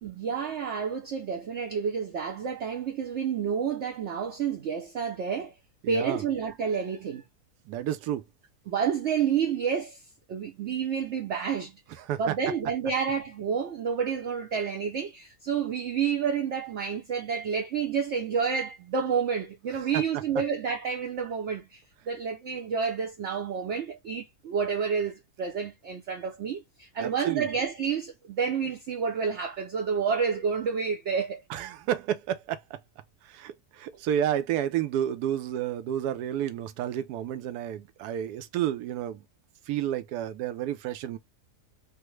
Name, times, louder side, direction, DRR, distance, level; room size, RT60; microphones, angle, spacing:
voice 1, 0.0-5.5 5.9-7.2 8.7-10.0 10.3-11.8 12.2-31.4, right 6 dB, 60° right, 0.8 m, -29 dB
voice 2, 5.8-6.2 7.7-8.2 12.0-12.3 19.9-20.0 27.0-27.5 31.5-32.6 33.3-39.2 39.7-41.2, right 11 dB, 80° right, 1.1 m, -30 dB
3.4 x 2.0 x 3.0 m
omnidirectional pair, 1.7 m